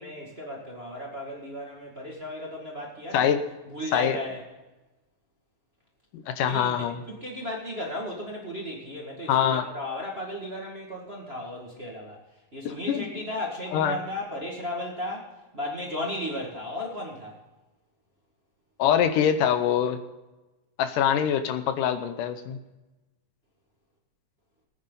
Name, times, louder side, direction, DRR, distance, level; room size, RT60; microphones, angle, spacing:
voice 1, 0.0-3.4 3.7-4.4 6.4-12.2 12.5-15.3 15.5-17.4, left 1 dB, 25° right, -2 dB, 1.7 m, -35 dB
voice 2, 6.1-7.0 9.3-9.6 12.7-13.1 13.7-14.0 18.8-20.0 20.8-22.6, left 9 dB, 80° left, 9 dB, 2.3 m, -24 dB
19.5 x 9.7 x 4.0 m, 1.1 s
omnidirectional pair, 3.8 m